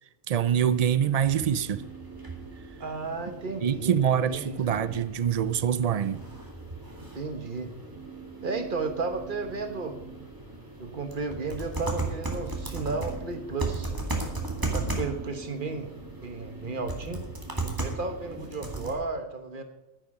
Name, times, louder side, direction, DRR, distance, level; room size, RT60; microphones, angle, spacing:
voice 1, 0.3-1.8 3.6-6.2, right 8 dB, 65° right, 0.3 m, -25 dB
sound 1, 0.7-18.9, right 3 dB, 15° right, 2.0 m, -36 dB
voice 2, 2.8-4.0 4.3-4.6 7.1-7.7 8.4-10.0 10.8-13.9 14.6-15.9 16.2-17.3 17.8-19.6, right 3 dB, 45° right, 1.4 m, -33 dB
11.0 x 10.5 x 5.4 m
omnidirectional pair, 1.2 m